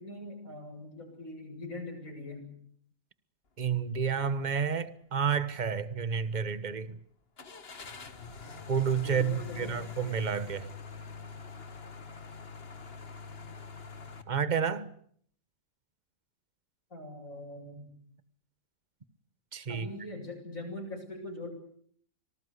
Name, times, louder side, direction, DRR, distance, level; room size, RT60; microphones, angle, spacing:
voice 1, 0.0-2.5 9.0-9.8 16.9-17.9 19.7-21.5, left 1 dB, 75° left, 8.1 m, -42 dB
voice 2, 3.6-7.0 8.7-10.7 14.3-14.9 19.5-19.9, right 6 dB, 35° right, 1.3 m, -30 dB
sound 1, 4.2-4.3 4.8-4.9 7.4-14.2, left 5 dB, 45° left, 1.8 m, -44 dB
26.5 x 19.0 x 8.2 m
omnidirectional pair, 1.4 m